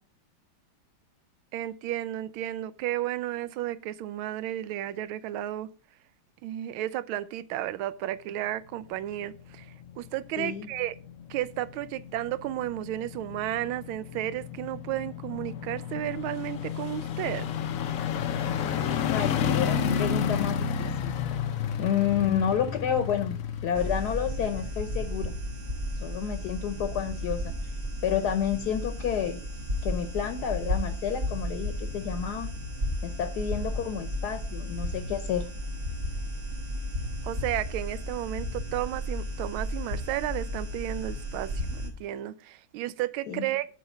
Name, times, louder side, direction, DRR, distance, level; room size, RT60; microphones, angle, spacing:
voice 1, 1.5-5.7 6.4-9.7 10.0-11.0 11.3-17.5 37.2-43.6, right 13 dB, 80° right, 1.4 m, -33 dB
sound 1, 8.8-25.4 25.7-25.8, left 8 dB, 80° left, 0.7 m, -32 dB
voice 2, 10.4-10.7 19.1-21.1 21.8-23.4 23.6-25.3 25.9-27.5 28.0-29.4 29.8-32.5 33.0-35.5 43.3-43.5, left 8 dB, 60° left, 1.2 m, -30 dB
sound 2, 23.7-41.9, equal, 50° right, 2.2 m, -33 dB
7.6 x 5.0 x 7.1 m
omnidirectional pair, 2.3 m